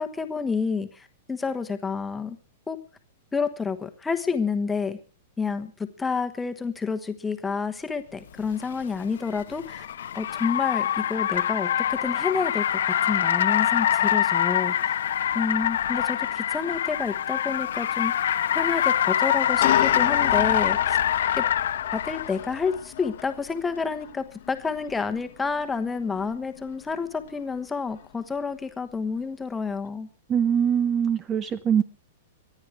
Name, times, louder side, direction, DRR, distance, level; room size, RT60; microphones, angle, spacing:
voice 1, 0.0-2.4 2.7-2.8 3.3-5.0 5.4-9.9 10.1-14.9 15.3-21.0 21.4-21.5 21.9-30.1, left 5 dB, 10° left, 8 dB, 1.3 m, -29 dB
Car, 8.4-22.4, left 10 dB, 80° left, 1.0 m, -24 dB
sound 1, 16.2-16.4 16.6-16.8 18.2-18.3 19.3-28.4, left 13 dB, 60° left, 1.2 m, -35 dB
voice 2, 30.3-31.8, right 8 dB, 20° right, 14 dB, 0.8 m, -22 dB
24.0 x 9.8 x 4.8 m, 0.35 s
hypercardioid pair, 155°, 0 cm